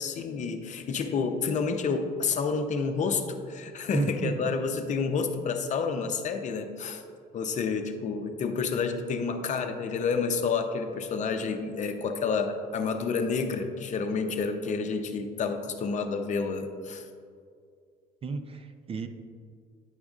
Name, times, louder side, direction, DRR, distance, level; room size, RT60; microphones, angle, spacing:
voice 1, 0.0-7.0 7.3-17.1, left 5 dB, 45° left, 6 dB, 0.6 m, -29 dB
voice 2, 3.9-4.5 18.2-19.1, right 4 dB, 35° right, 8 dB, 0.4 m, -32 dB
9.6 x 5.0 x 2.4 m, 2.1 s
cardioid pair, 110°, 17 cm